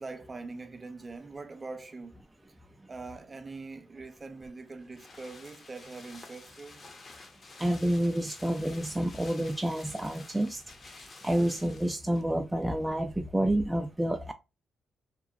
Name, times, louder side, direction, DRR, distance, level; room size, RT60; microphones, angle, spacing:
voice 1, 0.0-2.2 2.9-6.9, right 3 dB, 35° right, 0.7 m, -43 dB
sound 1, 4.1-12.3 12.6-12.7, left 3 dB, 45° left, 0.7 m, -51 dB
voice 2, 7.6-10.6 11.0-14.3, right 1 dB, 10° right, 0.3 m, -29 dB
3.0 x 2.3 x 2.3 m
supercardioid pair, 60°, 0 cm